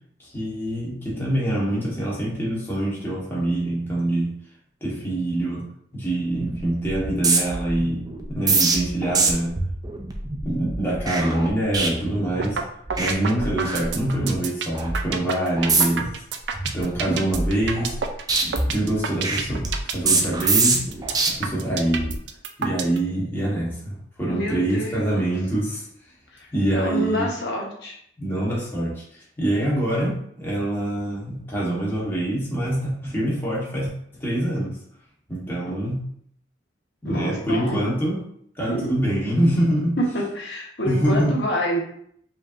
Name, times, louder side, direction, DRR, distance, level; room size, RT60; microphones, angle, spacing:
voice 1, 0.2-4.3 4.8-5.7 5.9-9.6 10.4-12.6 13.0-16.1 16.7-18.0 18.6-20.8 21.3-22.2 22.6-25.8 26.5-27.2 28.2-29.0 29.4-34.8 35.3-36.0 37.0-38.2 38.6-40.0 40.8-41.5, right 1 dB, 15° left, -6 dB, 1.3 m, -25 dB
sound 1, 6.3-6.6 6.8-12.6 12.9-13.1 13.4-14.3 14.7-15.0 15.6-16.1 16.5-18.0 18.3-21.3 21.8-22.2, right 3 dB, 20° right, 0.5 m, -25 dB
sound 2, 12.4-12.6 12.9-23.0, right 6 dB, 75° right, 0.4 m, -28 dB
voice 2, 24.3-25.3 26.3-28.0 37.0-37.9 38.6-39.0 40.0-40.1 40.3-41.8, equal, 70° left, -3 dB, 1.3 m, -28 dB
5.1 x 2.8 x 2.6 m, 0.68 s
head